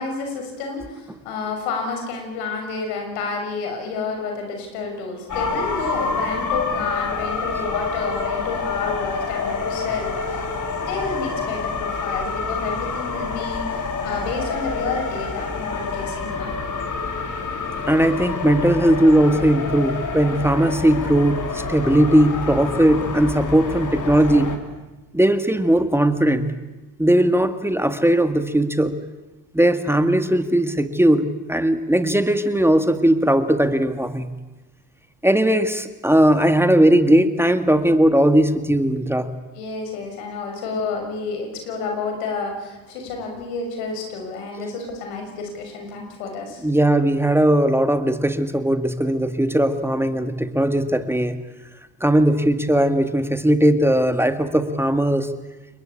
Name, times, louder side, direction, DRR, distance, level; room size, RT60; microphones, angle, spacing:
voice 1, 0.0-10.4 10.8-16.5 39.5-46.7, left 4 dB, 85° left, 3 dB, 6.7 m, -30 dB
sound 1, 5.3-24.6, left 4 dB, 45° left, 4.3 m, -27 dB
voice 2, 17.9-24.5 25.1-26.5 27.0-29.0 29.5-34.3 35.2-39.3 44.6-44.7 46.6-51.4 52.0-55.3, right 1 dB, 5° right, 8 dB, 2.0 m, -18 dB
29.5 x 20.5 x 8.6 m, 1.1 s
supercardioid pair, 75°, 43 cm